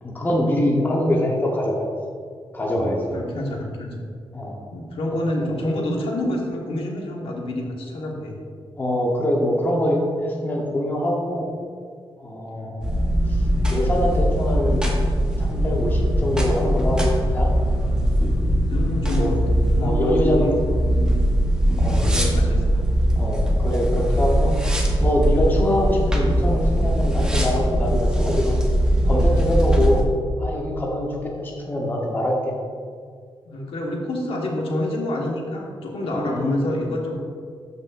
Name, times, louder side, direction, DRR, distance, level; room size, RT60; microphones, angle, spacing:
voice 1, 0.0-1.9 2.5-3.0 4.3-4.6 5.4-5.6 8.8-11.5 12.2-13.4 13.7-14.8 15.4-17.1 17.3-17.5 19.2-19.4 19.8-20.5 21.8-22.1 23.2-24.5 25.0-28.6 29.0-30.1 30.4-32.5 36.1-36.5, left 1 dB, 20° left, -2 dB, 1.0 m, -24 dB
voice 2, 2.6-3.9 4.7-8.3 12.5-12.7 18.7-20.6 20.8-21.2 21.8-22.6 33.4-37.2, left 1 dB, 85° left, -1 dB, 1.4 m, -28 dB
sound 1, 12.8-30.0, equal, 10° right, 0.9 m, -21 dB
12.5 x 5.4 x 2.5 m, 2.1 s
wide cardioid pair, 170°, 9 cm